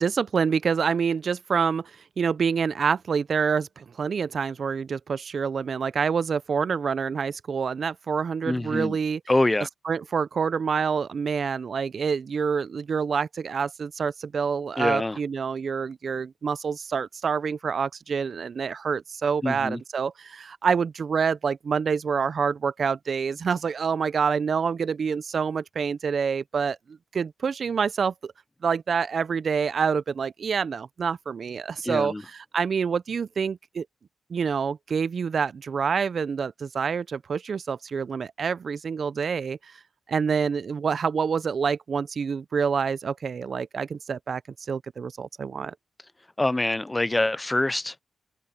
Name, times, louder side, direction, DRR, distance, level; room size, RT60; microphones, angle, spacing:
voice 1, 0.0-1.9 2.2-9.2 9.9-26.8 27.1-28.3 28.6-32.1 32.5-33.9 34.3-39.6 40.1-44.4 44.7-45.7, right 6 dB, 60° right, 0.5 m, -27 dB
voice 2, 8.4-9.0 9.3-9.7 14.8-15.2 19.4-19.8 31.8-32.2 46.4-48.0, left 2 dB, 20° left, 0.4 m, -25 dB
cardioid pair, 60°, 0 cm